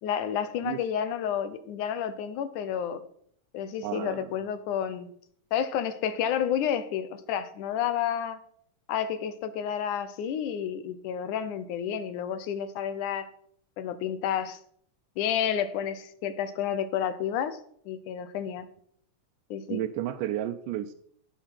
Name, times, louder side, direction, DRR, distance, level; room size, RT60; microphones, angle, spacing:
voice 1, 0.0-3.0 3.5-5.1 5.5-8.4 8.9-13.3 13.8-14.6 15.2-17.6 17.9-18.7 19.5-19.8, left 9 dB, 75° left, 12 dB, 2.3 m, -30 dB
voice 2, 3.8-4.3 19.7-20.9, right 12 dB, 85° right, 8 dB, 2.2 m, -32 dB
15.0 x 7.9 x 5.8 m, 0.65 s
omnidirectional pair, 3.8 m